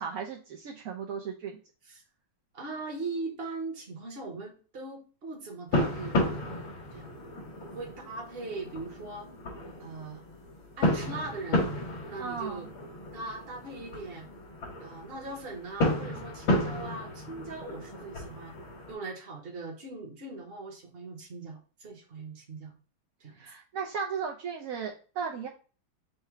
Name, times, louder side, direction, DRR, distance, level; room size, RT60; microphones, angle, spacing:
voice 1, 0.0-1.6 12.2-12.7 23.3-25.5, right 6 dB, 75° right, -1 dB, 0.7 m, -36 dB
voice 2, 2.5-6.5 6.9-7.2 7.6-9.3 9.8-10.2 10.8-11.7 12.1-12.7 13.1-14.3 14.8-18.5 18.9-22.7 23.2-23.5, right 3 dB, 40° right, 1 dB, 0.9 m, -40 dB
sound 1, 5.7-18.9, left 1 dB, 75° left, 2.0 m, -33 dB
4.7 x 2.2 x 4.6 m, 0.37 s
omnidirectional pair, 2.2 m